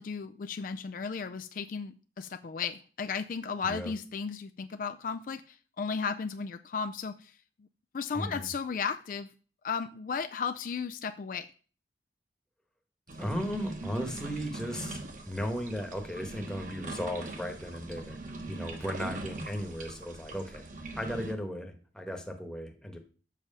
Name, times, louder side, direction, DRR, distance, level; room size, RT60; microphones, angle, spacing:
voice 1, 0.0-7.3 7.9-9.3 9.6-11.5, left 5 dB, 50° left, 9 dB, 0.4 m, -35 dB
voice 2, 8.1-8.5 13.2-18.2 18.5-20.7 20.9-23.0, equal, 5° left, 4 dB, 1.1 m, -36 dB
sound 1, 13.1-21.3, right 2 dB, 45° right, 1.2 m, -41 dB
7.5 x 6.0 x 5.3 m, 0.39 s
head